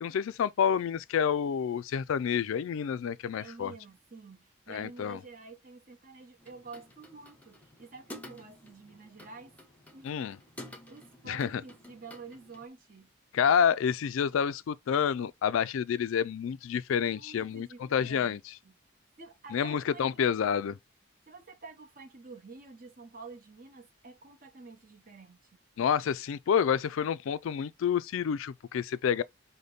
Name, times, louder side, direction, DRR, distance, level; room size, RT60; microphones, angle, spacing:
voice 1, 0.0-3.7 4.7-5.2 10.0-10.4 11.3-11.6 13.3-18.4 19.5-20.7 25.8-29.2, left 7 dB, 75° left, 0.3 m, -28 dB
voice 2, 3.3-9.5 9.9-10.2 10.9-13.1 16.9-18.7 19.2-20.0 20.3-20.6 21.3-25.4, right 4 dB, 40° right, 1.0 m, -49 dB
sound 1, 6.4-12.7, left 1 dB, 5° left, 0.7 m, -51 dB
5.1 x 2.2 x 3.9 m
head